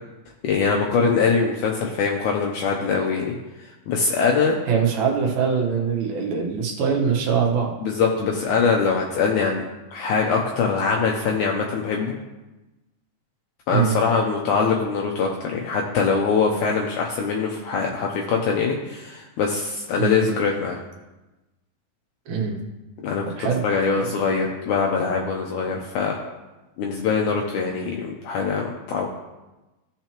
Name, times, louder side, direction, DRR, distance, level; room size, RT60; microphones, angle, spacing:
voice 1, 0.4-4.6 7.8-9.6 9.9-12.2 13.7-20.8 23.0-26.2 26.8-29.1, left 5 dB, 75° left, 0 dB, 2.0 m, -23 dB
voice 2, 4.7-7.7 13.7-14.0 20.0-20.3 22.3-22.6 23.4-23.6 24.0-24.1, right 6 dB, 65° right, 0 dB, 2.4 m, -23 dB
15.5 x 5.7 x 3.0 m, 1.1 s
omnidirectional pair, 4.0 m